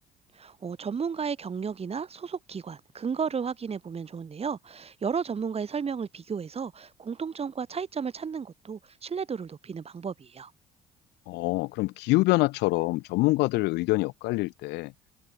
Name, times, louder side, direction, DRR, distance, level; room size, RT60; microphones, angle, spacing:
voice 1, 0.3-10.5, right 6 dB, 35° right, 5.0 m, -33 dB
voice 2, 11.3-14.9, left 21 dB, 75° left, 3.6 m, -25 dB
open air
supercardioid pair, 80°, 17 cm